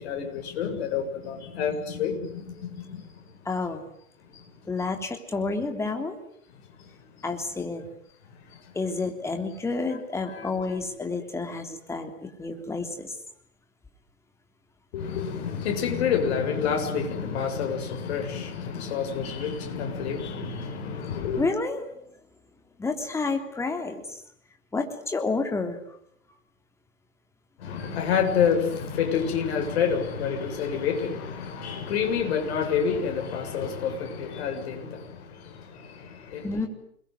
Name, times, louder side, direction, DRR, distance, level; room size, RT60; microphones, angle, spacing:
voice 1, 0.0-3.1 4.3-4.4 6.8-6.9 8.5-8.6 10.2-10.8 14.9-21.5 27.6-36.6, left 7 dB, 45° left, 4 dB, 7.4 m, -28 dB
voice 2, 3.4-3.9 4.7-6.2 7.2-7.8 8.7-13.1 21.4-21.9 22.8-24.2 24.7-25.8 36.4-36.7, left 3 dB, 5° left, 5 dB, 3.2 m, -30 dB
28.5 x 22.0 x 9.5 m, 0.70 s
figure-of-eight pair, 125°, 44 cm